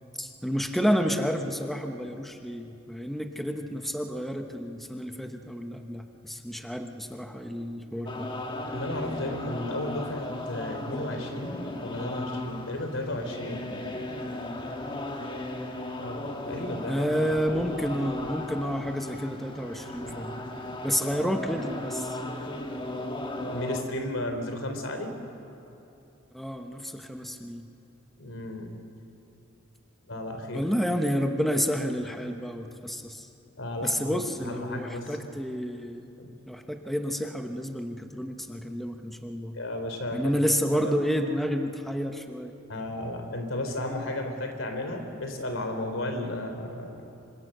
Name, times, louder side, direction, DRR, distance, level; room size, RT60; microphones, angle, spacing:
voice 1, 0.2-8.3 16.9-20.4 20.8-22.2 26.3-27.7 30.5-33.3 33.8-36.1 36.5-39.6 40.1-42.5, equal, ahead, 5 dB, 1.0 m, -30 dB
sound 1, 8.1-23.8, left 1 dB, 25° left, 1.6 m, -36 dB
voice 2, 8.7-14.1 16.0-17.0 20.0-20.3 23.4-25.1 28.2-28.7 30.1-30.7 33.6-35.2 36.2-36.3 39.5-40.5 40.7-40.9 42.7-47.1, left 1 dB, 80° left, 5 dB, 3.5 m, -34 dB
26.5 x 25.0 x 6.8 m, 3.0 s
head